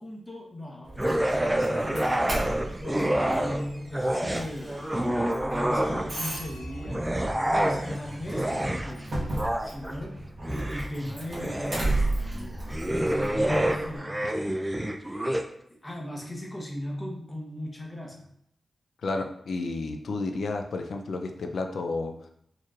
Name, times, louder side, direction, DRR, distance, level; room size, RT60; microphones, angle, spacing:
voice 1, 0.0-2.2 2.8-5.0 5.4-12.6 13.1-14.5 14.9-15.3 15.7-18.3, left 1 dB, 15° left, -1 dB, 0.8 m, -38 dB
Doorbell, 0.8-14.0, right 2 dB, 55° right, 1.4 m, -35 dB
sound 1, 1.0-3.6 3.9-6.3 6.8-15.4, right 1 dB, 10° right, 0.3 m, -28 dB
voice 2, 19.0-22.1, left 3 dB, 80° left, 4 dB, 0.4 m, -31 dB
4.5 x 3.0 x 2.4 m, 0.72 s
wide cardioid pair, 100°, 0 cm